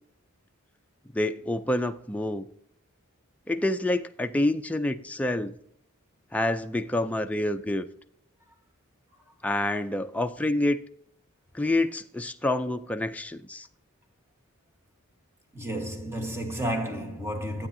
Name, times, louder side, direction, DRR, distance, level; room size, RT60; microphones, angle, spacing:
voice 1, 1.1-2.5 3.5-5.5 6.3-7.9 9.4-10.8 11.5-13.7, left 1 dB, 5° left, 0.4 m, -27 dB
voice 2, 15.5-17.7, right 1 dB, 10° right, 1.3 m, -31 dB
12.5 x 8.8 x 2.6 m
head